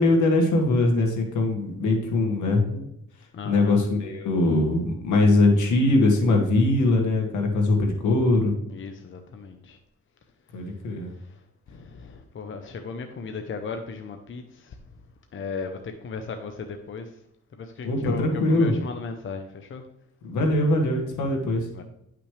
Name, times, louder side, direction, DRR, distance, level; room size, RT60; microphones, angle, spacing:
voice 1, 0.0-2.8 3.4-8.5 10.5-11.1 17.8-18.7 20.2-21.7, left 2 dB, 75° left, 2 dB, 2.1 m, -21 dB
voice 2, 3.3-3.8 8.7-9.8 11.7-14.8 15.3-17.1 17.6-19.8 21.7-21.8, left 4 dB, 40° left, 6 dB, 0.8 m, -36 dB
10.5 x 5.9 x 3.3 m, 0.79 s
cardioid pair, 90°, 30 cm